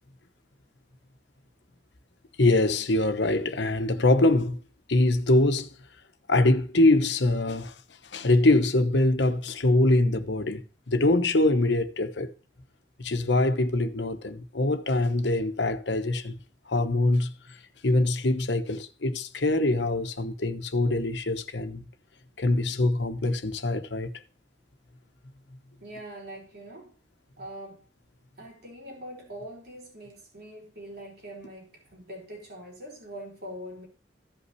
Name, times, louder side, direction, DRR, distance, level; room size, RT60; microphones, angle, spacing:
voice 1, 2.4-4.6 4.9-5.7 6.3-7.7 8.1-10.6 10.9-12.3 13.0-16.4 16.7-17.3 17.8-21.9 22.4-24.1, left 2 dB, 70° left, 1.0 m, -23 dB
voice 2, 25.8-27.0 27.4-27.9 28.4-33.9, right 1 dB, 60° right, 3.7 m, -43 dB
15.0 x 5.5 x 3.2 m
head